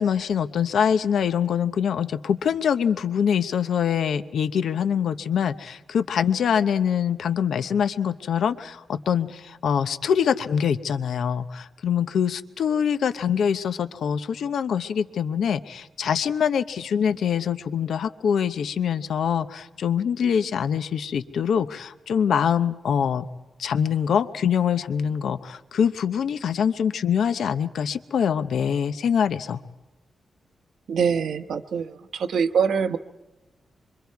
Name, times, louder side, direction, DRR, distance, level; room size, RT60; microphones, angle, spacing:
voice 1, 0.0-23.3 23.6-29.6, left 7 dB, 85° left, 11 dB, 0.8 m, -24 dB
voice 2, 30.9-33.0, right 6 dB, 80° right, 9 dB, 1.1 m, -24 dB
26.5 x 24.5 x 4.7 m, 1.1 s
wide cardioid pair, 145°, 0 cm